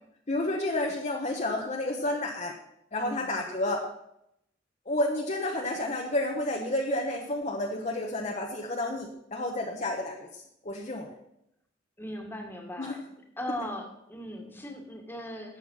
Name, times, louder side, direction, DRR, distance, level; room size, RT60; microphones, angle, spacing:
voice 1, 0.3-2.5 2.9-3.9 4.9-10.3 10.6-11.1 12.8-12.9, left 1 dB, 40° left, 1 dB, 1.1 m, -30 dB
voice 2, 3.0-3.3 12.0-13.0 13.4-15.6, equal, 10° left, 2 dB, 1.9 m, -38 dB
11.5 x 8.0 x 5.6 m, 0.79 s
head